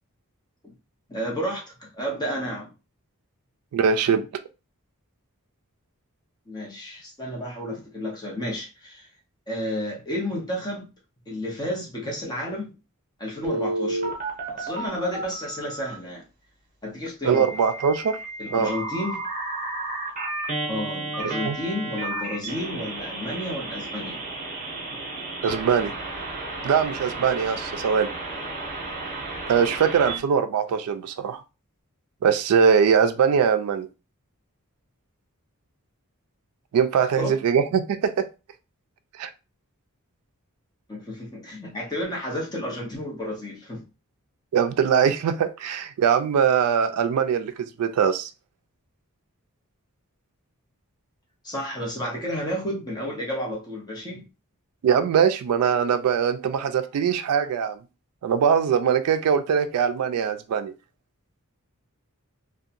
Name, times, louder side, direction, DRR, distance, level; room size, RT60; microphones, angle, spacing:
voice 1, 1.1-2.7 6.5-9.1 9.5-10.9 11.3-12.7 13.2-14.1 14.5-16.2 16.8-17.5 18.4-19.2 20.7-24.2 37.0-37.4 40.9-43.8 51.4-54.2, equal, 20° left, 0.7 m, -31 dB
voice 2, 3.7-4.3 17.2-18.2 18.5-18.7 21.2-21.6 25.4-25.9 26.6-28.1 29.5-31.4 32.2-33.9 36.7-38.2 39.2-39.3 44.5-48.3 54.8-57.8 58.2-60.7, right 7 dB, 80° right, 0.3 m, -22 dB
Telephone, 13.4-15.9 17.3-30.2, right 2 dB, 35° right, 0.8 m, -32 dB
2.7 x 2.2 x 2.5 m
head